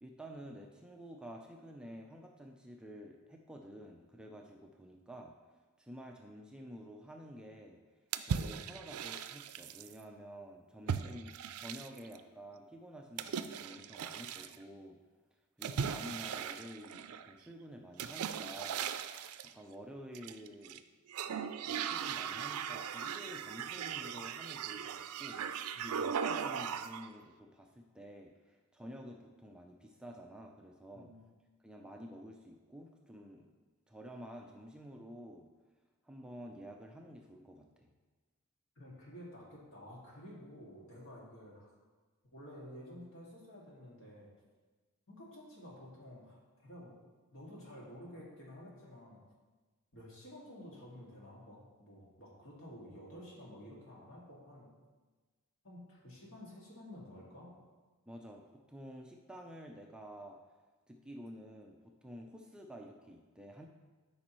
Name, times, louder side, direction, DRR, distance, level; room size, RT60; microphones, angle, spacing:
voice 1, 0.0-5.3 5.8-7.8 8.3-15.0 15.6-18.8 19.5-20.8 21.6-25.4 25.8-31.1 31.6-33.5 33.9-35.5 36.0-37.9 58.1-58.4 58.7-60.4 60.9-63.7, equal, 5° right, 1 dB, 0.5 m, -50 dB
sound 1, 8.1-9.9 10.9-12.2 13.2-14.6 15.6-17.3 18.0-19.5 20.1-20.8 21.1-27.1, right 7 dB, 85° right, 0.4 m, -38 dB
voice 2, 38.8-41.7 42.3-44.3 45.1-46.9 47.3-49.2 49.9-54.7 55.6-57.5, left 1 dB, 60° left, -4 dB, 2.2 m, -51 dB
12.5 x 5.3 x 3.1 m, 1.3 s
head